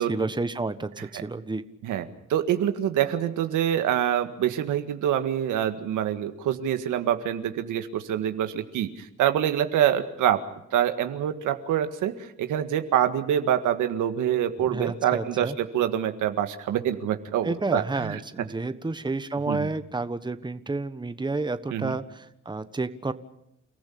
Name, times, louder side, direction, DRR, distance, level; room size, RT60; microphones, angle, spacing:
voice 1, 0.1-1.6 14.6-15.6 17.4-23.1, right 3 dB, 15° right, 11 dB, 1.3 m, -30 dB
voice 2, 2.3-10.4 10.7-18.2 19.5-19.7 21.7-21.9, right 10 dB, 85° right, 8 dB, 1.8 m, -26 dB
29.5 x 15.0 x 8.6 m, 0.82 s
cardioid pair, 90°, 30 cm